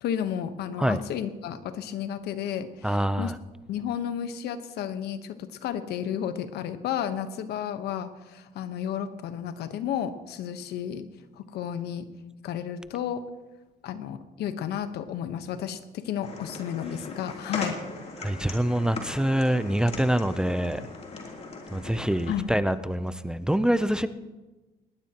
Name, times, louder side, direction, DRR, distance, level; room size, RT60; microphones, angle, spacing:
voice 1, 0.0-3.3 3.7-11.1 11.4-12.1 12.4-13.2 13.8-17.8 22.3-22.5, left 9 dB, 75° left, 10 dB, 1.1 m, -32 dB
voice 2, 2.8-3.4 18.2-20.8 21.7-24.1, right 1 dB, 5° right, 12 dB, 0.5 m, -25 dB
sound 1, 16.2-22.4, left 3 dB, 40° left, 3.2 m, -39 dB
19.5 x 19.0 x 3.0 m, 1.2 s
cardioid pair, 110°, 17 cm